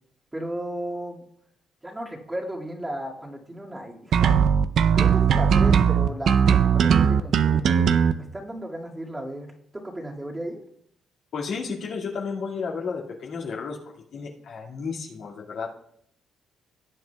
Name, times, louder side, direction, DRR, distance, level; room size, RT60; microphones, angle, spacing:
voice 1, 0.3-1.2 1.8-4.4 4.9-7.9 8.2-10.6, right 1 dB, 15° right, -2 dB, 2.1 m, -35 dB
sound 1, 4.1-8.1, right 7 dB, 70° right, 0.5 m, -18 dB
voice 2, 11.3-13.8 14.1-15.7, left 5 dB, 70° left, -2 dB, 2.1 m, -32 dB
18.0 x 7.9 x 2.3 m, 0.71 s
cardioid pair, 90°, 0 cm